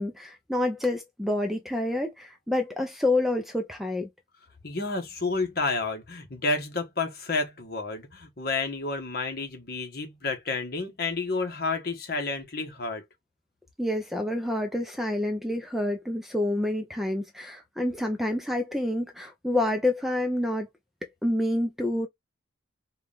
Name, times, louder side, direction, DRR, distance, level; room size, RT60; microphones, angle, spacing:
voice 1, 0.0-4.1 13.8-20.7 21.0-22.1, left 1 dB, ahead, 0.6 m, -28 dB
voice 2, 4.6-13.0, left 3 dB, 50° left, 1.3 m, -30 dB
4.6 x 2.5 x 3.5 m
head